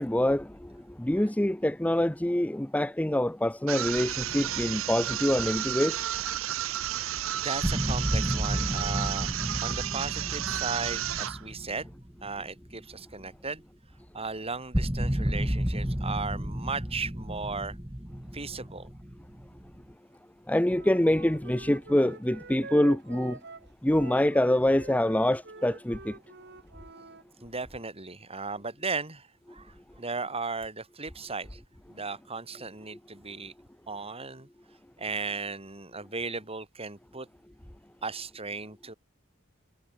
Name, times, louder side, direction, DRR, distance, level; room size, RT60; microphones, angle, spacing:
voice 1, 0.0-6.0 20.5-23.4 23.8-26.1, left 1 dB, 5° left, 0.7 m, -25 dB
sound 1, 3.7-11.4, right 12 dB, 70° right, 0.6 m, -32 dB
sound 2, 4.3-5.6 6.0-6.1 7.0-7.1 7.6-12.9 13.3-13.4 13.9-14.0 14.7-19.9, equal, 15° right, 2.0 m, -32 dB
voice 2, 6.6-11.9 12.2-13.6 14.1-17.8 18.3-18.9 27.4-31.6 31.9-33.5 33.9-34.5 35.0-37.3 38.0-38.9, right 4 dB, 30° right, 6.2 m, -36 dB
Wind instrument woodwind instrument, 20.7-27.2, right 3 dB, 55° right, 5.5 m, -46 dB
head